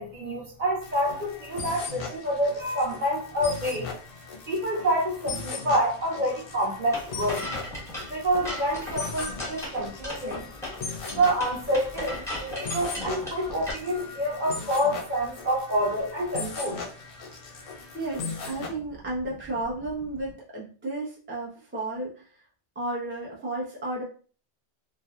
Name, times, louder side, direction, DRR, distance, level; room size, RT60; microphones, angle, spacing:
voice 1, 0.0-3.9 4.5-7.4 8.1-10.5 11.1-16.8, right 1 dB, 45° right, -3 dB, 0.9 m, -27 dB
sound 1, 0.8-18.7, left 4 dB, 60° left, 0.7 m, -39 dB
sound 2, 6.9-13.7, left 1 dB, 5° left, 1.0 m, -36 dB
voice 2, 17.9-22.4 22.8-24.0, right 2 dB, 15° right, -4 dB, 0.4 m, -33 dB
2.7 x 2.2 x 2.3 m, 0.41 s
omnidirectional pair, 1.2 m